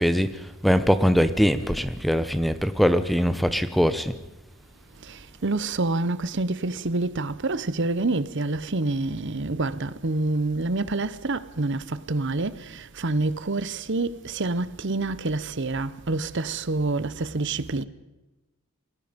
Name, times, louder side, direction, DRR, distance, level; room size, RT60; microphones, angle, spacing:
voice 1, 0.0-4.1, equal, ahead, 0.9 m, -22 dB
voice 2, 5.4-12.5 13.0-17.8, right 2 dB, 55° right, 0.9 m, -27 dB
28.5 x 21.5 x 5.2 m
head